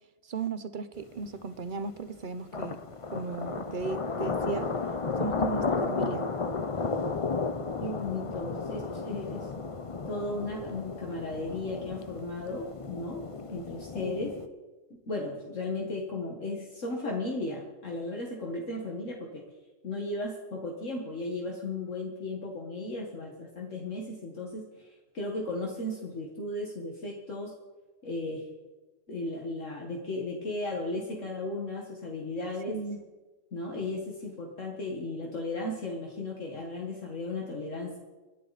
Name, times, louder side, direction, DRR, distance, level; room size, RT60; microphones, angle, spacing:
voice 1, 0.3-2.8 3.1-4.7 5.2-6.3 14.0-14.3 32.7-33.0, right 5 dB, 45° right, 12 dB, 0.9 m, -36 dB
sound 1, 1.0-1.1 2.5-14.5, left 4 dB, 30° left, 0.7 m, -33 dB
voice 2, 7.8-9.5 10.1-13.2 13.5-14.3 15.1-19.4 19.8-27.5 28.0-28.4 29.1-32.8 33.5-38.0, left 2 dB, 65° left, -1 dB, 2.1 m, -35 dB
26.0 x 10.5 x 4.2 m, 1.2 s
omnidirectional pair, 1.4 m